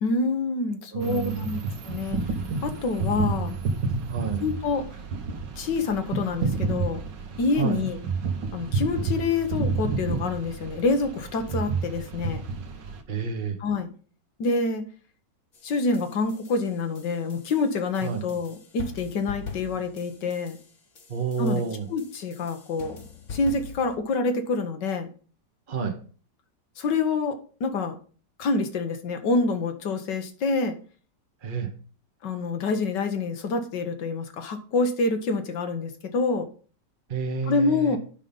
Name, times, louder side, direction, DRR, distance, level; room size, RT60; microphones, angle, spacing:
voice 1, 0.0-1.6 1.9-2.2 2.6-3.6 4.4-4.9 5.6-7.0 7.4-8.0 8.5-12.4 13.6-13.9 14.4-14.8 15.6-20.6 21.4-21.6 21.9-23.0 23.3-25.1 26.8-28.0 28.4-30.8 32.2-36.5 37.5-38.0, left 3 dB, 75° left, 7 dB, 1.8 m, -27 dB
voice 2, 0.9-1.7 4.1-4.4 7.6-7.8 13.1-13.6 18.0-18.2 21.1-21.9 25.7-26.0 31.4-31.7 37.1-38.0, right 5 dB, 35° right, 4 dB, 1.1 m, -29 dB
sound 1, 1.0-13.0, right 4 dB, 80° right, 1.7 m, -30 dB
sound 2, 15.5-24.0, left 4 dB, 45° left, 1.5 m, -43 dB
8.9 x 5.6 x 5.3 m, 0.40 s
omnidirectional pair, 1.9 m